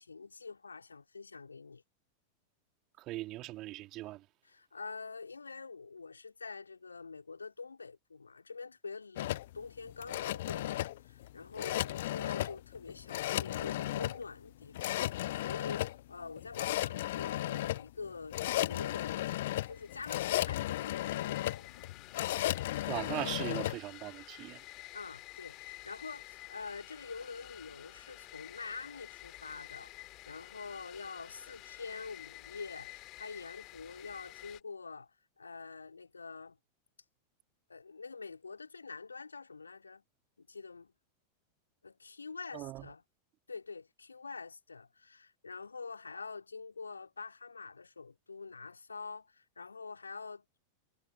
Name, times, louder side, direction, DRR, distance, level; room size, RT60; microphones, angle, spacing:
voice 1, 0.0-1.8 4.4-19.3 19.7-21.7 24.9-35.1 35.4-36.6 37.7-40.0 40.4-40.9 41.8-43.0 43.5-50.6, left 4 dB, 75° left, 3.1 m, -46 dB
voice 2, 3.0-4.2 22.9-24.6 42.5-42.9, right 17 dB, 35° right, 3.3 m, -39 dB
sound 1, 9.2-23.8, left 15 dB, 55° left, 0.4 m, -35 dB
sound 2, 19.5-34.6, left 19 dB, 40° left, 2.6 m, -51 dB
figure-of-eight pair, 90°, 0 cm